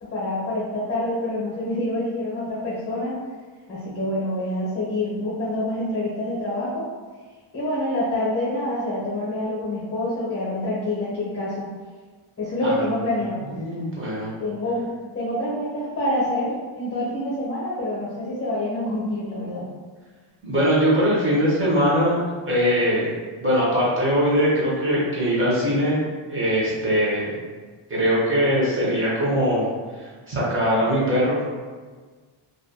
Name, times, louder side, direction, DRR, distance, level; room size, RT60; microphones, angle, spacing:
voice 1, 0.0-3.2 3.7-6.9 7.5-11.7 12.4-13.4 14.4-19.7, left 1 dB, 30° left, -7 dB, 0.7 m, -26 dB
voice 2, 13.5-14.3 20.4-22.2 22.5-23.1 23.4-26.0 26.3-27.3 27.9-29.7 30.3-31.6, equal, 25° right, -7 dB, 0.7 m, -21 dB
2.3 x 2.2 x 2.6 m, 1.4 s
wide cardioid pair, 175°, 48 cm